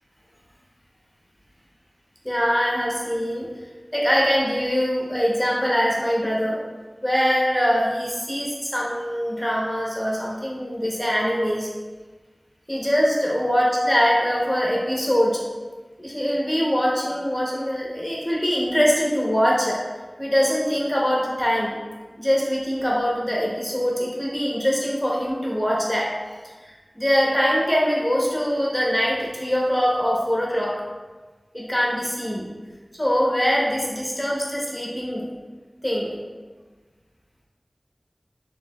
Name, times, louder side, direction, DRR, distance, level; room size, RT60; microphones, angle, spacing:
voice 1, 2.2-3.5 3.9-6.6 7.0-11.7 12.7-15.4 16.0-19.8 20.2-21.7 22.2-26.1 26.6-30.8 31.5-32.4 32.9-35.2 35.8-36.2, equal, 10° left, -4 dB, 0.7 m, -23 dB
4.6 x 3.4 x 2.2 m, 1.3 s
wide cardioid pair, 45°, 0 cm